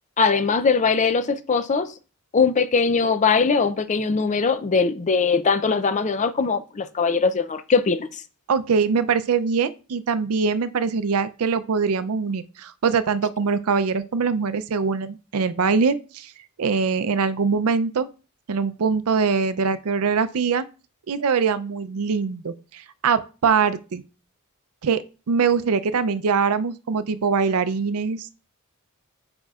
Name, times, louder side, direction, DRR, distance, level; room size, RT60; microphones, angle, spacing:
voice 1, 0.2-1.9 2.3-8.2, left 5 dB, 35° left, 0.4 m, -21 dB
voice 2, 8.5-16.3 16.6-18.1 18.5-20.6 21.1-24.0 24.8-28.4, right 5 dB, 75° right, 0.5 m, -23 dB
8.8 x 5.2 x 2.4 m
head